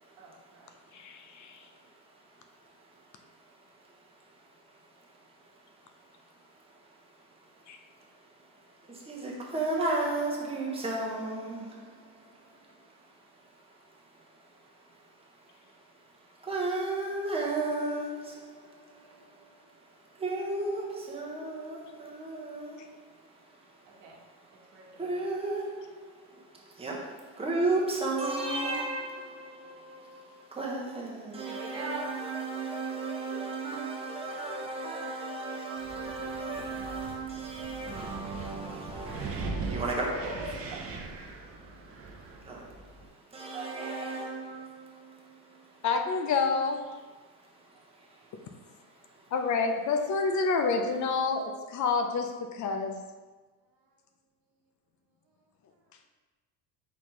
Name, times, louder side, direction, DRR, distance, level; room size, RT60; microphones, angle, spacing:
voice 1, 0.2-0.7 24.0-24.3 24.7-25.3 31.5-32.2 36.7-37.2 39.5-40.8 42.6-42.9 43.5-44.2 48.2-48.3 53.7-53.9 55.3-55.4, right 2 dB, 85° right, 1.3 m, -43 dB
voice 2, 0.9-1.6 7.7-7.8 45.8-46.8 49.3-53.0, left 4 dB, 45° left, 0.5 m, -28 dB
voice 3, 8.9-11.9 16.4-19.1 20.2-22.9 25.0-26.1 26.8-40.1 42.4-42.7 43.3-45.2, right 2 dB, 15° right, 0.9 m, -34 dB
Wind, 35.8-43.1, right 4 dB, 35° right, 0.6 m, -40 dB
4.1 x 4.0 x 3.1 m
cardioid pair, 115°, 41 cm